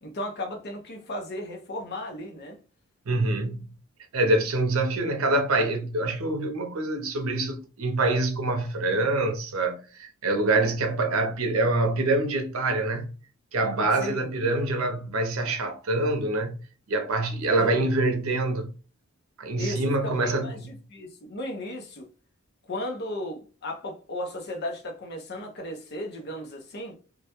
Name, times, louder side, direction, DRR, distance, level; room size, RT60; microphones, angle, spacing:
voice 1, 0.0-2.6 14.0-14.3 17.6-17.9 19.6-22.1 22.7-27.0, left 1 dB, 50° left, 0.6 m, -35 dB
voice 2, 3.1-3.7 4.1-13.1 13.5-16.6 16.9-18.7 19.4-20.5, right 2 dB, 80° right, 0.6 m, -25 dB
2.3 x 2.1 x 2.8 m
head